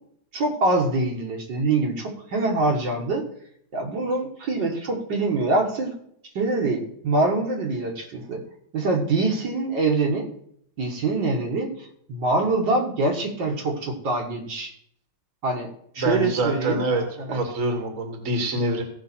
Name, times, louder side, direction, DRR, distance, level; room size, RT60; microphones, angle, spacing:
voice 1, 0.3-3.2 3.7-5.9 6.4-8.4 8.7-10.3 10.8-14.7 15.4-15.7 15.9-16.8 17.2-17.4, right 3 dB, 70° right, 0 dB, 2.2 m, -24 dB
voice 2, 16.0-17.0 17.3-18.8, right 1 dB, 45° right, 4 dB, 1.8 m, -25 dB
16.0 x 5.6 x 4.3 m, 0.69 s
omnidirectional pair, 2.1 m